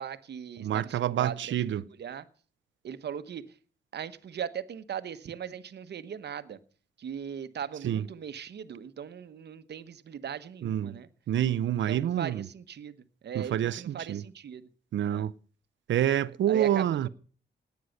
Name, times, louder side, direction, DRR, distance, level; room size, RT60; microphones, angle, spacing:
voice 1, 0.0-2.2 2.8-3.4 3.9-6.6 7.0-11.1 11.9-14.7 15.0-15.3 16.5-17.1, right 8 dB, 65° right, 1.2 m, -39 dB
voice 2, 0.6-1.9 7.8-8.1 10.6-11.0 11.3-12.5 13.3-14.2 14.9-15.3 15.9-17.1, right 11 dB, 80° right, 0.7 m, -27 dB
18.0 x 9.3 x 6.5 m
wide cardioid pair, 130°, 19 cm